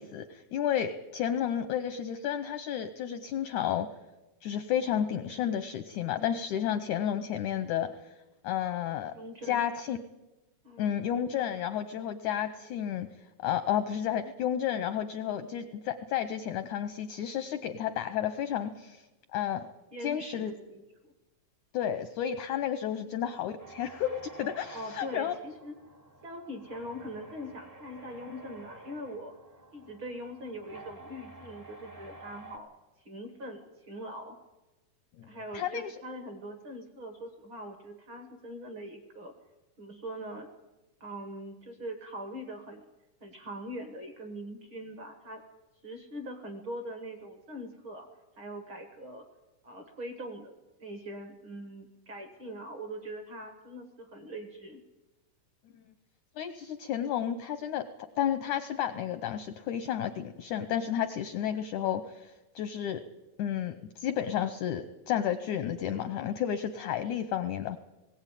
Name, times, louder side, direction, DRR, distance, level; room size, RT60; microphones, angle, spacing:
voice 1, 0.0-3.9 4.4-7.9 8.4-9.1 9.4-10.0 10.8-13.1 13.4-19.0 19.3-19.7 20.0-20.5 21.7-25.3 35.2-35.3 35.5-35.9 55.7-55.8 56.4-57.8 58.2-63.0 63.4-67.8, left 10 dB, 80° left, 10 dB, 1.7 m, -31 dB
voice 2, 9.1-9.7 10.6-10.9 18.7-18.8 19.9-21.1 22.9-23.0 24.7-25.8 26.2-29.3 29.7-32.7 33.0-34.4 35.3-39.3 39.8-40.5 41.0-42.8 43.2-45.4 45.8-48.1 48.4-49.2 49.6-50.5 50.8-54.8, equal, 50° right, 5 dB, 1.6 m, -42 dB
sound 1, 23.6-32.6, right 2 dB, 20° right, 0.5 m, -50 dB
20.0 x 16.5 x 9.1 m, 1.1 s
omnidirectional pair, 4.4 m